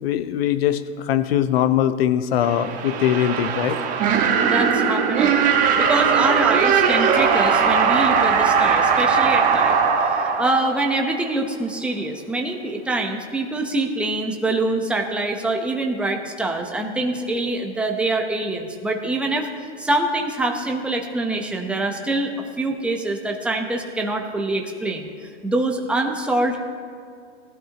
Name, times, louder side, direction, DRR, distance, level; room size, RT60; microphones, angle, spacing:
voice 1, 0.0-3.8, left 10 dB, 60° left, 12 dB, 0.9 m, -21 dB
sound 1, 2.4-11.3, right 6 dB, 25° right, 1.5 m, -19 dB
voice 2, 4.5-9.8 10.2-19.5 19.8-25.1 25.4-26.6, right 2 dB, 5° right, 2 dB, 0.9 m, -25 dB
19.5 x 12.5 x 3.0 m, 2.2 s
hypercardioid pair, 140°, 34 cm